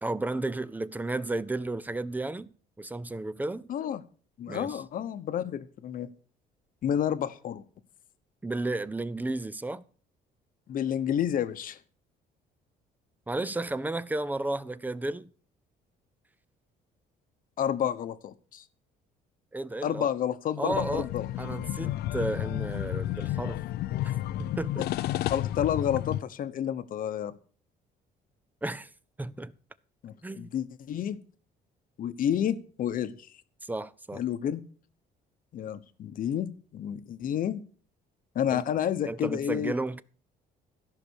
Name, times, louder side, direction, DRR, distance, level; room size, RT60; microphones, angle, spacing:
voice 1, 0.0-2.5 2.8-3.7 4.5-4.8 8.4-9.8 13.3-15.3 19.5-20.1 20.6-21.1 21.4-23.6 24.4-24.9 28.6-28.9 29.2-29.5 30.2-30.5 33.6-34.2 38.5-38.6 39.0-40.0, right 2 dB, 10° right, 0.5 m, -33 dB
voice 2, 3.7-4.0 4.4-6.1 6.8-7.6 10.7-11.8 17.6-18.6 19.8-21.3 24.8-24.9 25.3-27.3 30.0-31.2 32.0-33.3 34.1-34.6 35.5-37.6 38.3-39.7, left 9 dB, 55° left, 1.0 m, -30 dB
sound 1, 20.7-26.2, left 14 dB, 70° left, 0.5 m, -31 dB
14.0 x 5.8 x 6.4 m
cardioid pair, 110°, 17 cm